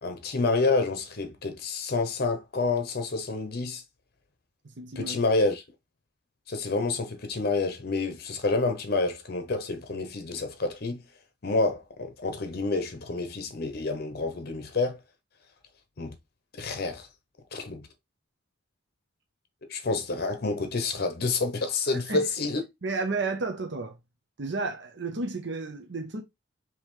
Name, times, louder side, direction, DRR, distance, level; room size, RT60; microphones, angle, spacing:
voice 1, 0.0-3.8 5.0-5.6 6.5-11.0 11.4-15.0 16.0-16.1 16.5-17.1 17.5-17.9 19.7-22.6, left 3 dB, 50° left, 0.7 m, -28 dB
voice 2, 4.8-5.2 22.1-22.2 22.8-23.9 24.4-26.2, right 3 dB, 60° right, 0.8 m, -32 dB
5.3 x 3.1 x 3.1 m
head